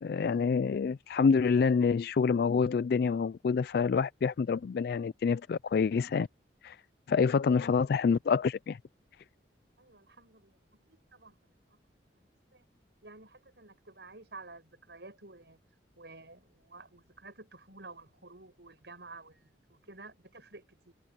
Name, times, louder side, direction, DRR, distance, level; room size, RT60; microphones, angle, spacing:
voice 1, 0.0-6.3 6.6-6.8 7.1-8.8, left 5 dB, 60° left, 0.3 m, -27 dB
voice 2, 9.8-11.8 12.5-12.7 13.0-15.6 16.0-20.9, right 3 dB, 70° right, 7.0 m, -52 dB
head